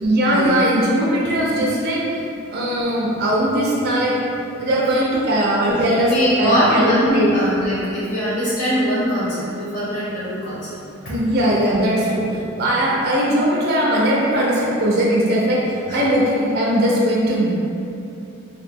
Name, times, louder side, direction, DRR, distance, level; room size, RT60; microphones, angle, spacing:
voice 1, 0.0-2.0 2.5-4.1 4.6-7.3 11.1-15.6 15.9-17.5, equal, 50° right, -5 dB, 0.4 m, -19 dB
voice 2, 6.1-10.7 15.9-16.0, equal, 55° left, -9 dB, 0.6 m, -21 dB
2.8 x 2.0 x 3.4 m, 2.7 s
head